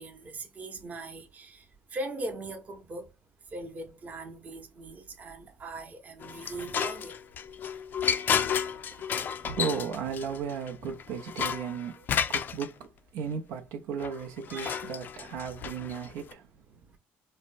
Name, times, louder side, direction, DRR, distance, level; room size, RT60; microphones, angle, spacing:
voice 1, 0.0-1.6 1.9-3.1 3.5-7.1 14.5-14.8, right 2 dB, 30° right, 0.8 m, -40 dB
sound 1, 6.2-12.7 14.0-16.3, left 8 dB, 40° left, 0.3 m, -32 dB
voice 2, 9.4-12.9 13.1-16.5, right 6 dB, 85° right, 0.7 m, -35 dB
4.2 x 2.1 x 2.5 m
cardioid pair, 120°, 5 cm